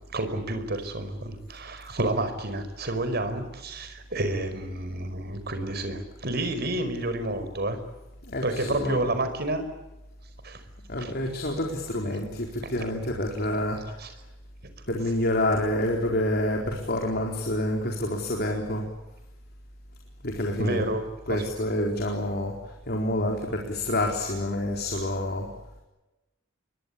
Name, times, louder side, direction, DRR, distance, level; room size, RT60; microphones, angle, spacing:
voice 1, 0.1-7.8 8.4-9.6 10.4-10.6 11.0-11.2 14.0-14.1 20.6-21.4, right 2 dB, 55° right, 9 dB, 5.1 m, -30 dB
voice 2, 8.2-9.1 10.9-14.1 14.9-18.9 20.2-21.0 21.3-25.5, left 1 dB, 50° left, 1 dB, 4.2 m, -28 dB
28.5 x 23.5 x 8.5 m, 1.0 s
head